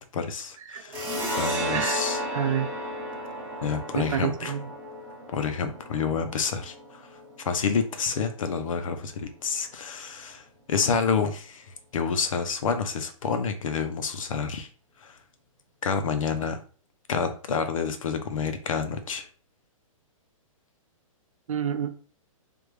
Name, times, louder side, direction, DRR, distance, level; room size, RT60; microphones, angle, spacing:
voice 1, 0.1-1.0 1.4-2.2 3.6-4.5 5.3-7.1 7.4-14.7 15.0-15.2 15.8-16.6 17.1-19.3, left 5 dB, 70° left, 0.7 m, -28 dB
sound 1, 0.9-8.1, right 1 dB, 10° right, 0.9 m, -33 dB
voice 2, 2.3-2.7 3.9-4.7 21.5-21.9, right 8 dB, 65° right, 0.6 m, -28 dB
3.5 x 2.5 x 3.2 m
hypercardioid pair, 175°, 18 cm